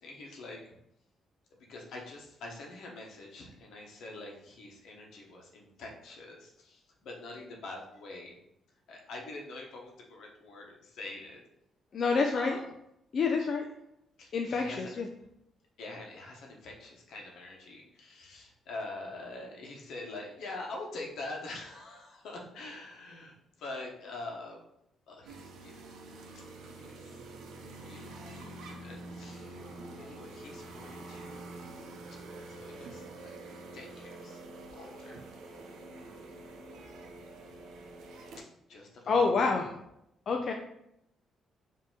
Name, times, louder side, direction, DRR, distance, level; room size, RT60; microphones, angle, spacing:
voice 1, 0.0-0.7 1.7-8.4 8.9-11.4 12.3-12.7 14.2-15.0 15.8-24.6 25.1-25.8 26.3-26.4 26.7-27.2 27.8-29.7 30.0-31.5 32.5-33.4 33.7-34.4 34.7-35.2 38.4-39.7, left 2 dB, 75° left, 0 dB, 1.0 m, -45 dB
voice 2, 11.9-12.6 13.1-13.7 14.3-15.1 39.1-39.7 40.3-40.5, left 4 dB, 50° left, 2 dB, 0.4 m, -27 dB
sound 1, 25.2-38.4, right 2 dB, 80° right, 0.6 m, -46 dB
4.8 x 2.8 x 3.7 m, 0.82 s
cardioid pair, 90°, 0 cm